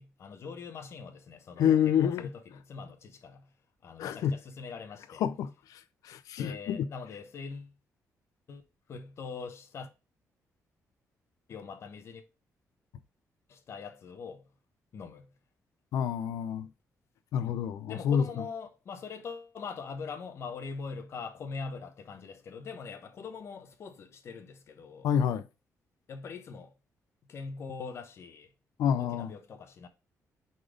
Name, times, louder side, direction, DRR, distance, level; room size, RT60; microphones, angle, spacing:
voice 1, 0.0-3.5 3.8-5.2 6.4-7.7 8.5-8.6 8.9-9.9 11.5-12.2 13.5-14.5 14.9-15.3 17.9-25.1 26.1-26.7 27.3-28.5 29.0-29.9, left 5 dB, 50° left, 0.9 m, -42 dB
voice 2, 1.6-2.3 4.0-4.3 5.2-6.9 15.9-16.7 17.3-18.3 25.0-25.5 28.8-29.3, left 8 dB, 85° left, 0.5 m, -28 dB
5.0 x 4.1 x 4.9 m
cardioid pair, 145°, 6 cm